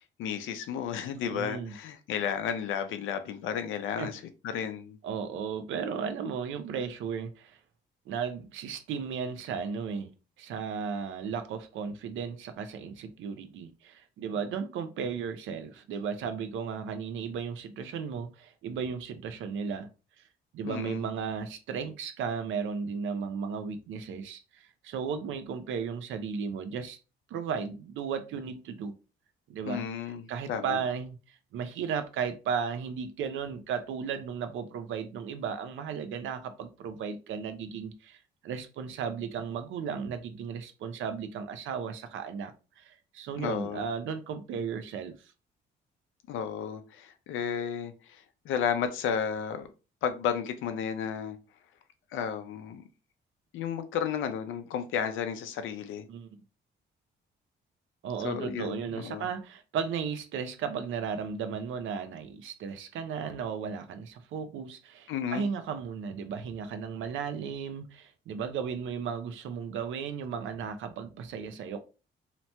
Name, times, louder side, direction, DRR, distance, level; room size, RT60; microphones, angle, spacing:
voice 1, 0.2-5.0 20.6-21.1 29.6-30.8 43.4-43.9 46.3-49.7 50.0-51.4 52.1-52.8 53.5-56.1 58.2-59.3 65.1-65.5, left 8 dB, 80° left, 0.5 m, -33 dB
voice 2, 1.2-1.7 4.0-4.1 5.0-7.6 8.1-10.1 10.4-19.9 20.5-27.0 27.3-28.9 29.5-29.8 30.3-45.3 56.1-56.4 58.0-71.8, right 6 dB, 75° right, 0.5 m, -35 dB
2.9 x 2.1 x 2.8 m
cardioid pair, 90°, 20 cm